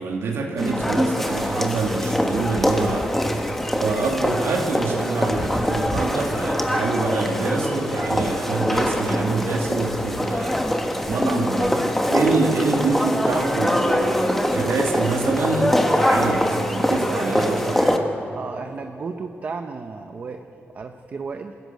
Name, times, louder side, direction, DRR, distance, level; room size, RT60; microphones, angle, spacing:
voice 1, 0.0-3.1 3.8-10.6 11.1-18.1, right 3 dB, 75° right, 1 dB, 2.2 m, -25 dB
sound 1, 0.6-18.0, left 1 dB, 5° left, 1.3 m, -23 dB
voice 2, 18.4-21.5, right 4 dB, 40° right, 6 dB, 0.8 m, -34 dB
26.5 x 13.5 x 9.3 m, 3.0 s
wide cardioid pair, 160°, 4 cm